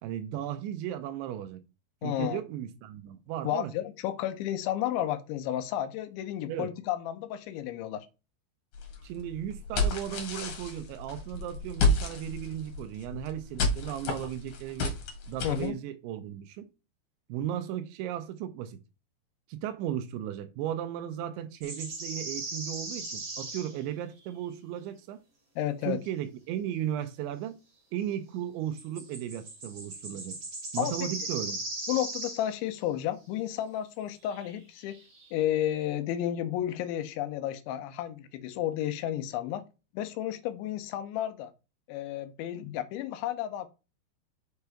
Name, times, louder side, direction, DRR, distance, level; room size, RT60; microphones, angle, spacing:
voice 1, 0.0-1.6 2.0-3.7 6.5-6.7 9.0-15.0 15.3-16.7 17.3-18.8 19.5-25.2 25.9-27.6 27.9-30.4 30.7-31.6, right 11 dB, 85° right, 3.0 m, -35 dB
voice 2, 2.0-2.4 3.4-8.1 15.4-15.8 25.6-26.0 30.8-30.9 31.9-35.0 35.3-39.6 39.9-41.5 41.9-43.7, left 12 dB, 80° left, 3.0 m, -32 dB
sound 1, 8.7-15.7, left 2 dB, 50° left, 2.7 m, -31 dB
sound 2, 21.6-23.8 24.2-24.3 28.8-32.5 34.2-34.5 34.8-35.3, right 2 dB, 30° right, 2.8 m, -38 dB
6.7 x 5.7 x 4.8 m
omnidirectional pair, 5.4 m